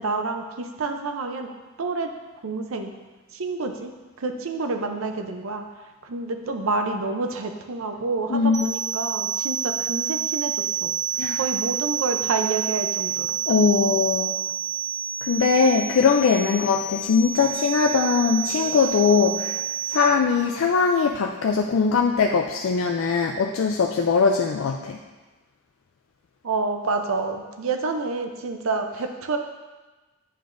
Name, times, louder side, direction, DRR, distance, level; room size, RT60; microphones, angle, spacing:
voice 1, 0.0-1.5 1.8-2.1 2.4-2.9 3.3-3.9 4.2-5.6 6.0-10.9 11.4-13.4 26.4-29.4, right 3 dB, 80° right, 5 dB, 0.6 m, -28 dB
voice 2, 8.3-8.7 11.2-11.4 13.5-14.4 15.2-19.6 19.9-25.0, left 5 dB, 70° left, 2 dB, 0.4 m, -21 dB
sound 1, 8.5-20.0, right 8 dB, 20° right, 0.5 m, -28 dB
8.6 x 5.2 x 2.6 m, 1.2 s
head